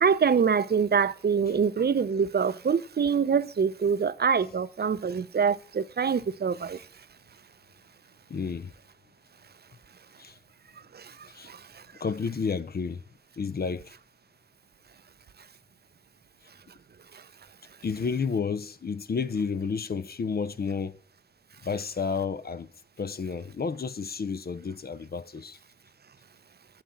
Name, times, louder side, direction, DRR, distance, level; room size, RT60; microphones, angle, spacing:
voice 1, 0.0-6.8 10.9-11.1 11.5-11.6, right 6 dB, 85° right, 0.5 m, -25 dB
voice 2, 8.3-8.7 10.2-10.4 11.3-11.5 12.0-13.0 13.4-14.0 17.8-21.0 21.6-22.7 23.0-25.6, left 5 dB, 75° left, 0.5 m, -31 dB
8.5 x 5.8 x 7.0 m
wide cardioid pair, 75°, 16 cm